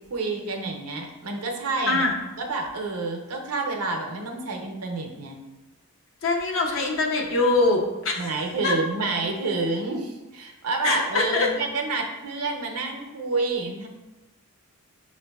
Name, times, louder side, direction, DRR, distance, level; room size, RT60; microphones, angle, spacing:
voice 1, 0.1-2.1 2.4-5.4 8.2-13.9, right 3 dB, 85° right, 2 dB, 0.6 m, -29 dB
voice 2, 6.2-8.3 8.6-8.7 10.8-11.5, left 3 dB, 65° left, 0 dB, 0.6 m, -23 dB
5.7 x 2.5 x 2.3 m, 1.1 s
head